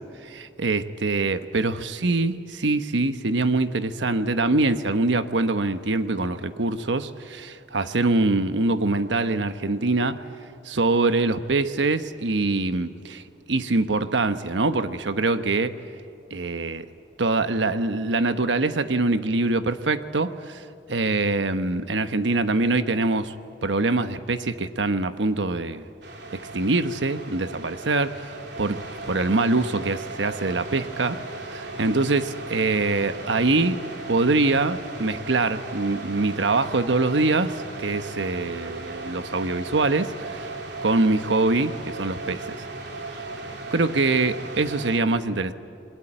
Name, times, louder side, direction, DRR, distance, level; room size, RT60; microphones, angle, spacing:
voice 1, 0.2-10.2 10.6-15.7 16.3-16.9 17.2-20.6 20.9-23.3 23.6-25.9 26.5-28.8 29.1-31.2 31.5-33.8 34.1-40.5 40.8-42.6 43.7-45.5, right 3 dB, 85° right, 10 dB, 1.1 m, -24 dB
sound 1, 26.0-45.0, right 2 dB, 70° right, 3.4 m, -37 dB
27.0 x 22.0 x 9.1 m, 2.6 s
head